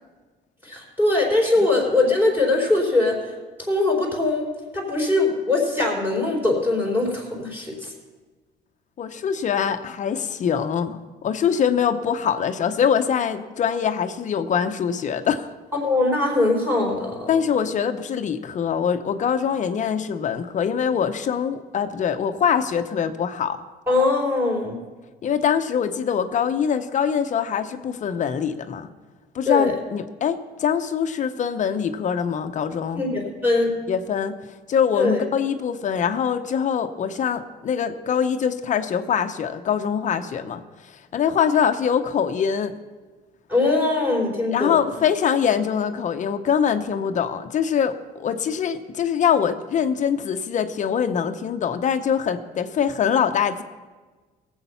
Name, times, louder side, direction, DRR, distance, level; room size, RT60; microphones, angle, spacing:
voice 1, 0.6-3.3 3.7-7.9 15.8-17.3 23.9-24.8 29.4-29.7 32.9-33.8 35.0-35.2 43.5-44.8, left 2 dB, 10° right, -2 dB, 4.2 m, -21 dB
voice 2, 9.0-15.5 17.3-23.6 25.2-28.9 29.3-33.0 33.9-34.4 34.7-40.6 41.1-42.7 44.5-53.6, left 7 dB, 45° left, 9 dB, 0.8 m, -23 dB
17.5 x 8.1 x 5.7 m, 1.3 s
cardioid pair, 110°, 17 cm